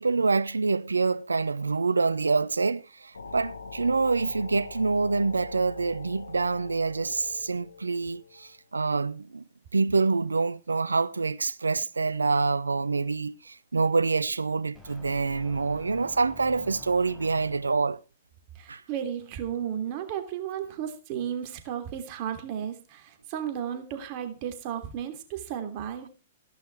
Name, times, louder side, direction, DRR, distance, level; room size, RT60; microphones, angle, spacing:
voice 1, 0.0-9.4 9.7-18.0 18.7-18.8, right 4 dB, 75° right, 0.8 m, -26 dB
sound 1, 3.1-8.6, left 4 dB, 75° left, 1.7 m, -44 dB
sound 2, 14.7-17.9, left 3 dB, 10° left, 6.3 m, -49 dB
voice 2, 18.5-26.1, right 9 dB, 40° right, 3.1 m, -34 dB
16.0 x 11.5 x 4.6 m
figure-of-eight pair, 105°, 0 cm